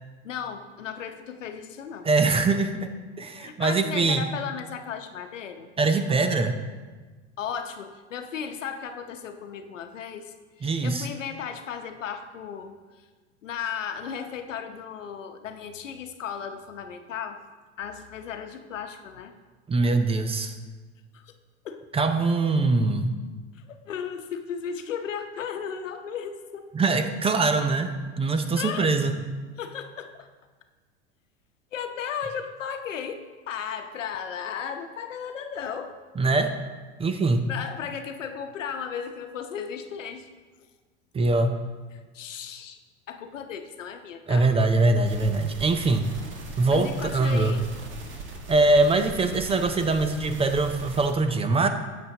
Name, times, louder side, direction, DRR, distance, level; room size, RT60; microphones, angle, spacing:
voice 1, 0.2-2.1 3.4-5.7 7.4-13.0 13.4-17.4 17.8-19.3 21.1-21.3 21.6-21.9 23.5-26.7 28.5-28.9 29.6-30.3 31.7-36.0 37.5-40.3 41.9-42.8 43.1-44.5 46.7-47.7, left 7 dB, 90° left, 7 dB, 0.9 m, -35 dB
voice 2, 2.0-4.2 5.8-6.6 10.6-11.1 19.7-20.5 21.9-23.2 26.7-27.9 28.2-29.1 36.2-36.5 37.0-37.5 41.1-41.6 44.3-46.1 46.6-47.6 48.5-51.7, right 3 dB, 15° right, 8 dB, 0.6 m, -23 dB
sound 1, 45.0-51.1, right 3 dB, 30° right, 1.5 m, -39 dB
10.5 x 7.6 x 2.9 m, 1.4 s
hypercardioid pair, 100°, 37 cm